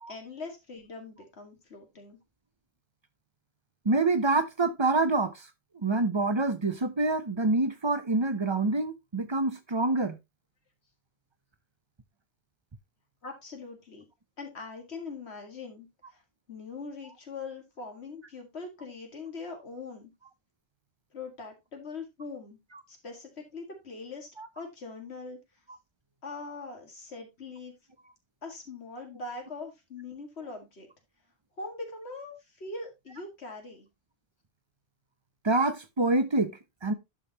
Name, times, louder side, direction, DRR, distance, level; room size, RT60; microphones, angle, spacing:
voice 1, 0.1-2.2 13.2-14.0 14.4-16.2 16.5-20.1 21.1-22.6 22.9-24.3 24.6-25.4 26.2-27.7 28.4-30.9 31.6-33.9, left 3 dB, 85° left, 2.3 m, -42 dB
voice 2, 3.8-5.4 5.8-10.2 24.4-24.5 35.4-36.9, right 2 dB, 30° right, 0.8 m, -26 dB
11.5 x 5.3 x 2.9 m
omnidirectional pair, 1.1 m